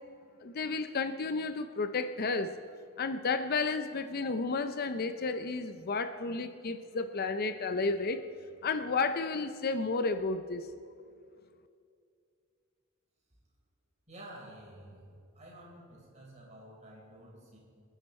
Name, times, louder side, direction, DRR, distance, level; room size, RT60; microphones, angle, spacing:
voice 1, 0.4-2.5 3.0-8.2 8.6-10.7, left 4 dB, 50° left, 10 dB, 0.6 m, -32 dB
voice 2, 14.1-17.6, right 1 dB, 35° right, -3 dB, 4.5 m, -51 dB
27.0 x 10.0 x 4.3 m, 2.3 s
head